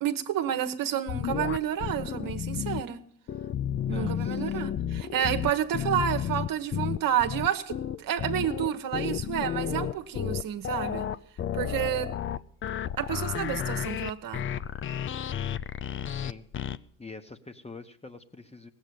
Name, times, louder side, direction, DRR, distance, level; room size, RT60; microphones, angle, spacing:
voice 1, 0.0-3.0 3.9-11.1 11.5-12.1 13.0-14.5, right 10 dB, 50° right, 1.3 m, -30 dB
sound 1, 1.1-2.8 3.3-16.8, left 9 dB, 30° left, 0.5 m, -32 dB
voice 2, 3.9-4.6 16.1-16.5 17.0-18.7, left 3 dB, 15° left, 1.3 m, -45 dB
18.0 x 8.2 x 8.6 m
hypercardioid pair, 65°, 43 cm